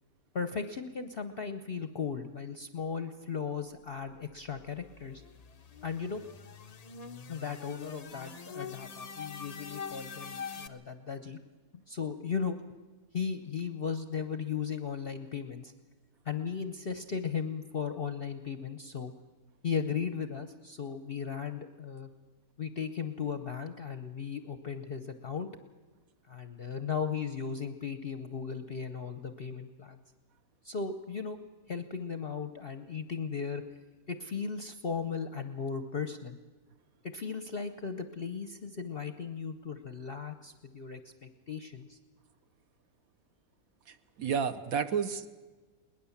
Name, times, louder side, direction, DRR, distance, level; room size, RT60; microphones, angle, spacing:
voice 1, 0.3-5.2 5.8-6.2 7.3-11.4 11.9-12.6 13.1-15.7 16.2-19.1 19.6-22.1 22.6-25.5 26.3-30.0 30.6-31.4 31.7-33.6 34.1-36.4 37.1-42.0, left 6 dB, 50° left, 9 dB, 0.7 m, -36 dB
sound 1, 4.3-10.7, left 6 dB, 85° left, 0.3 m, -44 dB
voice 2, 43.9-45.3, right 6 dB, 60° right, 10 dB, 1.1 m, -31 dB
21.5 x 19.0 x 7.1 m, 1.3 s
omnidirectional pair, 1.8 m